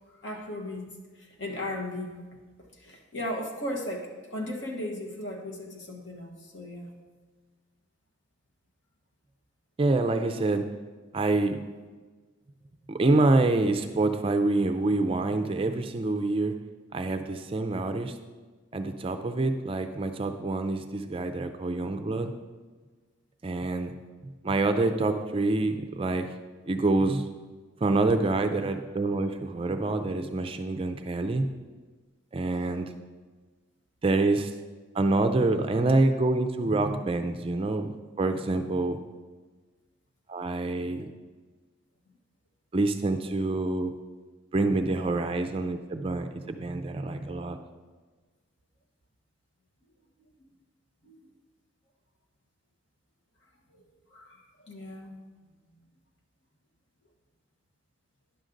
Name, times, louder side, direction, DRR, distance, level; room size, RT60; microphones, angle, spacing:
voice 1, 0.1-0.9 1.1-2.2 2.6-6.9 51.0-51.2 53.7-53.8 54.1-55.1, left 1 dB, 60° left, 1 dB, 1.3 m, -36 dB
voice 2, 9.8-10.6 11.1-11.6 12.9-16.6 16.9-18.2 18.7-22.3 23.4-23.9 24.4-26.3 26.7-27.3 27.8-31.5 32.3-32.9 34.0-34.5 34.9-37.9 38.2-39.0 40.3-41.1 42.7-43.9 44.5-47.6, right 2 dB, 25° right, 7 dB, 0.4 m, -26 dB
10.5 x 6.3 x 3.8 m, 1.4 s
head